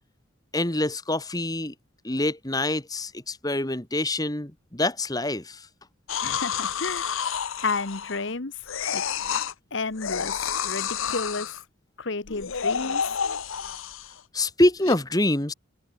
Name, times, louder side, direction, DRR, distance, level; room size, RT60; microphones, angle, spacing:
voice 1, 0.5-1.7 2.0-5.7 14.3-15.5, left 1 dB, 15° left, 1.7 m, -25 dB
sound 1, 6.1-8.3 8.7-9.5 10.0-11.6 12.2-14.2 14.8-14.9, left 7 dB, 75° left, 0.9 m, -29 dB
voice 2, 6.2-7.1 7.6-8.6 8.9-9.0 9.7-11.6 12.0-13.2, left 3 dB, 55° left, 1.2 m, -31 dB
open air
head